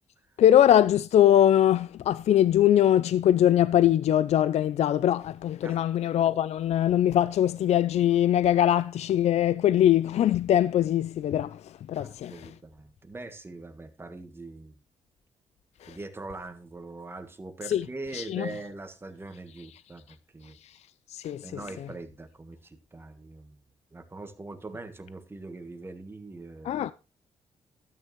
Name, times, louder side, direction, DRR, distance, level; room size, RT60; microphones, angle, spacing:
voice 1, 0.4-12.5 15.8-16.0 17.7-17.8 18.1-18.5 20.6-20.7 21.1-21.6 26.6-26.9, left 11 dB, 70° left, 0.4 m, -22 dB
voice 2, 12.0-14.7 15.9-20.6 21.4-23.6 23.9-26.9, right 3 dB, 20° right, 1.5 m, -42 dB
12.5 x 9.2 x 3.1 m
cardioid pair, 110°, 12 cm